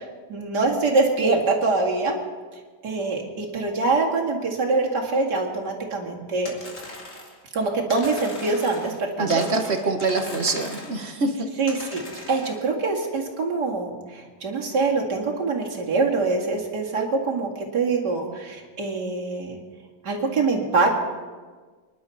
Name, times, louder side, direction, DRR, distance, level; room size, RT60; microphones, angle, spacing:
voice 1, 0.0-2.2 2.8-6.6 7.5-9.4 11.6-19.6 20.0-20.9, right 3 dB, 85° right, -1 dB, 2.7 m, -24 dB
sound 1, 6.4-7.4 7.9-9.0 9.3-11.0 11.7-12.6, left 1 dB, 40° left, 2.4 m, -39 dB
voice 2, 9.2-11.5, right 3 dB, 40° right, 5 dB, 1.5 m, -24 dB
25.5 x 11.0 x 4.2 m, 1.4 s
omnidirectional pair, 1.7 m